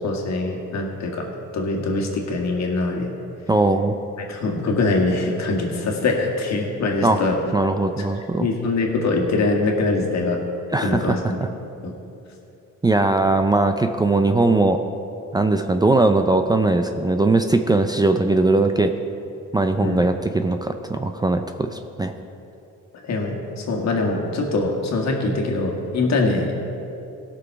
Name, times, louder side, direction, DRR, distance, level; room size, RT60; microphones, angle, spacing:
voice 1, 0.0-3.1 4.3-7.4 8.4-10.4 10.8-11.4 11.8-11.9 19.8-20.0 23.0-26.5, left 3 dB, 65° left, 1 dB, 1.9 m, -23 dB
voice 2, 3.5-3.9 7.0-7.2 7.5-8.5 10.7-11.5 12.8-14.8 15.3-18.9 19.5-22.1, right 2 dB, 15° right, 7 dB, 0.5 m, -20 dB
16.5 x 6.3 x 4.7 m, 2.8 s
cardioid pair, 90°, 30 cm